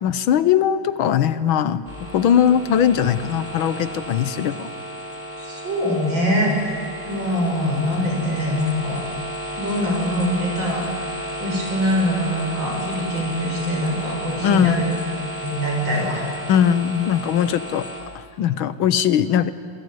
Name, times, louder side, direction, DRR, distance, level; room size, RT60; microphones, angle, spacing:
voice 1, 0.0-4.7 14.4-14.8 16.5-17.9 18.2-19.5, left 9 dB, 80° left, 13 dB, 1.7 m, -20 dB
sound 1, 1.9-18.0, right 1 dB, 5° left, 4.9 m, -33 dB
voice 2, 5.4-9.0 9.6-11.1 11.4-14.9 15.4-16.3, equal, 65° right, 0 dB, 7.5 m, -23 dB
27.0 x 22.5 x 9.3 m, 2.2 s
omnidirectional pair, 2.2 m